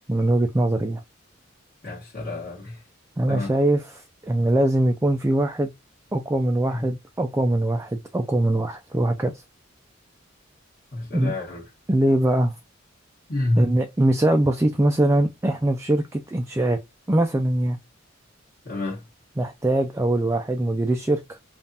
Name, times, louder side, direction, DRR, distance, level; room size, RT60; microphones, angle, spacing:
voice 1, 0.1-1.0 3.2-5.7 6.1-9.3 11.1-11.3 11.9-12.5 13.6-16.8 17.1-17.8 19.4-21.4, right 1 dB, 15° right, 0.4 m, -22 dB
voice 2, 1.8-2.8 3.3-3.5 6.7-6.8 10.9-11.6 13.3-13.7 18.6-19.0, left 2 dB, 45° left, 1.4 m, -28 dB
5.2 x 2.4 x 2.8 m
head